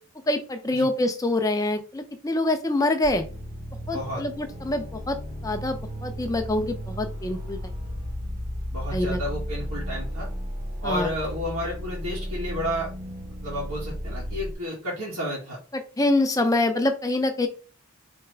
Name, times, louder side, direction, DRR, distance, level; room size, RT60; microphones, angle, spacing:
voice 1, 0.3-3.3 3.9-5.2 5.4-7.6 8.9-9.2 10.8-11.1 16.0-17.5, left 2 dB, 15° left, 5 dB, 0.6 m, -25 dB
sound 1, 3.0-14.5, equal, 20° right, 0.9 m, -34 dB
voice 2, 3.9-4.2 8.7-10.3 10.8-12.9 13.4-15.6, equal, 90° right, -7 dB, 1.9 m, -31 dB
4.7 x 3.5 x 3.3 m, 0.37 s
head